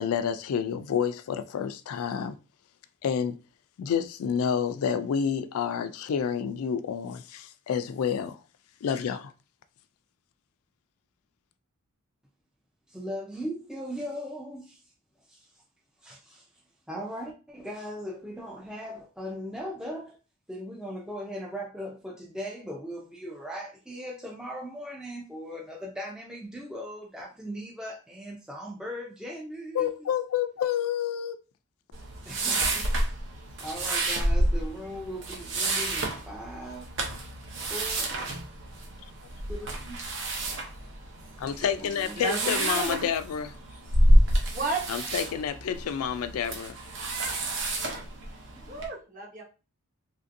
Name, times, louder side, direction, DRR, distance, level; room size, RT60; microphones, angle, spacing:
voice 1, 0.0-2.4 3.0-3.4 3.8-8.4 8.8-9.3 29.7-31.4 41.4-43.5 44.9-46.8, left 8 dB, 80° left, 0.3 m, -29 dB
voice 2, 12.9-14.8 16.0-16.4 16.9-20.1 20.5-29.8 32.3-32.9 33.6-36.9 37.7-38.1 39.5-40.0, equal, 5° right, 0.4 m, -38 dB
Sliding Paper Folder, 31.9-48.9, right 1 dB, 55° right, 0.7 m, -28 dB
voice 3, 42.2-43.1 44.5-44.8 47.0-47.4 47.9-48.0 48.7-49.4, right 3 dB, 35° right, 1.0 m, -33 dB
3.2 x 2.6 x 2.5 m
head